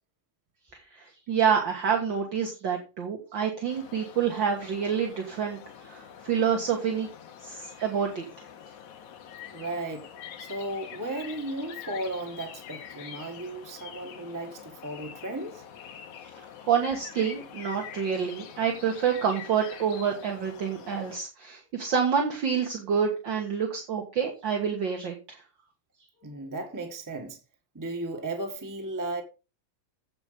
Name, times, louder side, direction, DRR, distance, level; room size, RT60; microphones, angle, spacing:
voice 1, 0.7-7.1 7.4-8.2 16.2-16.3 16.6-25.4, right 7 dB, 45° right, 1.7 m, -28 dB
sound 1, 3.7-21.2, left 8 dB, 70° left, 2.7 m, -45 dB
voice 2, 9.5-10.1 10.4-15.6 26.2-27.4 27.7-29.2, right 2 dB, 15° right, 0.7 m, -35 dB
10.0 x 8.3 x 5.0 m
omnidirectional pair, 3.7 m